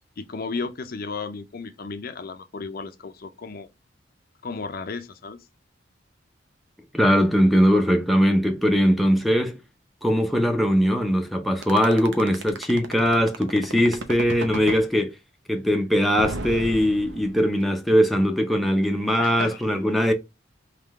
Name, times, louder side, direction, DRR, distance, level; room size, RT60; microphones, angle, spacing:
voice 1, 0.2-3.7 4.4-5.4 19.2-19.6, left 4 dB, 50° left, 0.5 m, -34 dB
voice 2, 6.9-9.5 10.0-15.1 15.5-20.1, equal, ahead, 0.6 m, -20 dB
sound 1, 11.6-14.8 16.2-17.6, right 2 dB, 75° right, 0.8 m, -32 dB
3.7 x 3.2 x 3.5 m
head